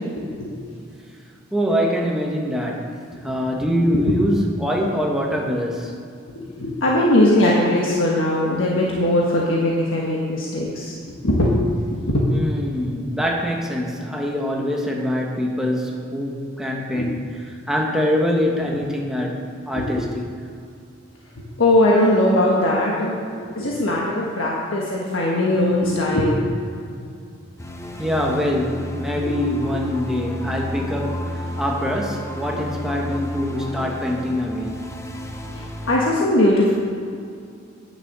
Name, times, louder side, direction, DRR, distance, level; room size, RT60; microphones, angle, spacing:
voice 1, 1.5-5.9 12.3-20.3 28.0-34.8, equal, 5° right, -1 dB, 1.2 m, -24 dB
voice 2, 6.3-11.5 11.9-12.2 16.9-17.0 19.7-20.1 21.4-26.5 29.2-29.6 35.9-36.7, left 1 dB, 75° left, -4 dB, 1.4 m, -20 dB
sound 1, 27.6-36.0, left 1 dB, 15° left, 0.7 m, -32 dB
9.8 x 6.9 x 6.8 m, 2.4 s
head